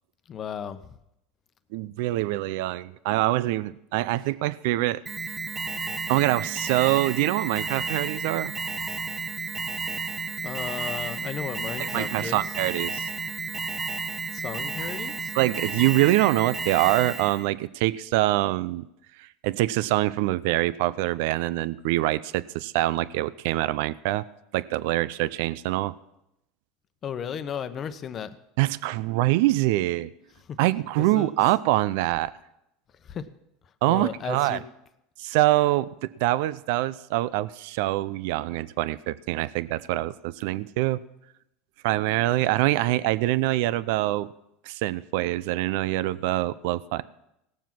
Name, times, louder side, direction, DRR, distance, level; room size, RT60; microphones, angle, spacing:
voice 1, 0.3-0.8 10.4-12.4 14.3-15.3 27.0-28.3 30.5-30.6 31.1-31.3 33.0-33.3 33.9-34.6, left 8 dB, 35° left, 11 dB, 0.9 m, -34 dB
voice 2, 1.7-5.0 6.1-8.5 11.8-13.1 15.3-18.9 19.2-24.2 24.5-25.9 28.6-30.1 30.6-32.3 33.8-34.6 35.2-41.0 41.8-44.3 44.7-47.0, right 17 dB, 75° right, 17 dB, 0.5 m, -25 dB
Alarm, 5.1-17.5, right 4 dB, 20° right, 0.9 m, -32 dB
17.5 x 7.2 x 5.9 m, 0.84 s
supercardioid pair, 120°, 0 cm